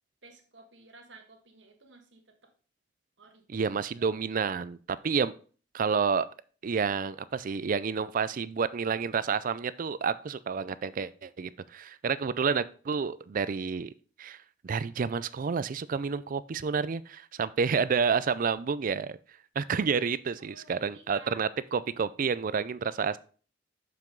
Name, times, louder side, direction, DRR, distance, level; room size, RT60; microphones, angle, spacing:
voice 1, 0.2-2.5 3.2-4.2 5.0-5.1 20.4-21.4, right 3 dB, 80° right, 3 dB, 1.6 m, -54 dB
voice 2, 3.5-5.3 5.7-6.3 6.6-13.9 14.2-14.4 14.6-19.2 19.6-23.2, right 5 dB, 50° right, 16 dB, 0.4 m, -29 dB
6.8 x 6.0 x 3.8 m, 0.40 s
head